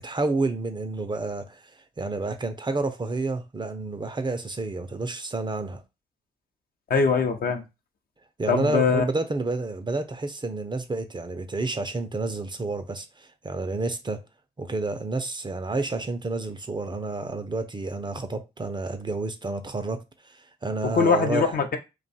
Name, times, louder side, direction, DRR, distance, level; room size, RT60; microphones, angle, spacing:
voice 1, 0.0-1.7 2.0-5.8 8.4-14.2 14.6-21.6, right 3 dB, 25° right, 0.6 m, -30 dB
voice 2, 6.9-7.6 8.5-9.0 20.9-21.8, left 5 dB, 50° left, 0.7 m, -22 dB
2.6 x 2.3 x 4.0 m
hypercardioid pair, 45°, 19 cm